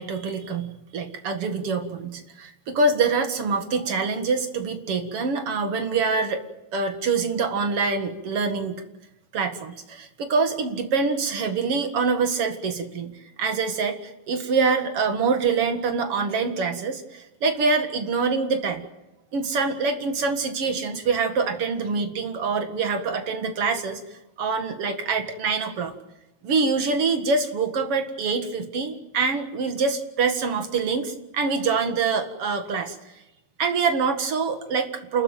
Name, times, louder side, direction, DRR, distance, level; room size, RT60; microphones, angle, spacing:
voice 1, 0.0-6.4 6.7-8.8 9.3-18.9 19.3-24.0 24.4-25.9 26.4-33.0 33.6-35.2, right 4 dB, 50° right, 6 dB, 1.9 m, -25 dB
29.0 x 14.5 x 9.2 m, 1.0 s
omnidirectional pair, 4.9 m